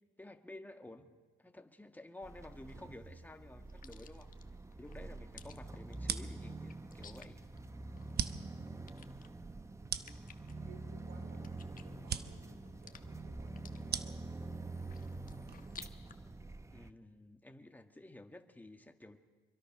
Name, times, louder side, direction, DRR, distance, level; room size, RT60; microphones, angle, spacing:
voice 1, 0.2-1.1 1.4-4.3 4.8-7.4 16.7-19.2, left 1 dB, 10° left, 6 dB, 1.6 m, -52 dB
sound 1, 2.2-16.2, left 6 dB, 45° left, 1.3 m, -60 dB
sound 2, 2.2-16.9, right 2 dB, 15° right, 0.8 m, -46 dB
sound 3, 6.0-15.9, right 8 dB, 55° right, 1.0 m, -44 dB
voice 2, 10.6-14.4, right 5 dB, 80° right, 6 dB, 2.9 m, -61 dB
25.5 x 23.0 x 5.9 m, 1.3 s
cardioid pair, 90°, 20 cm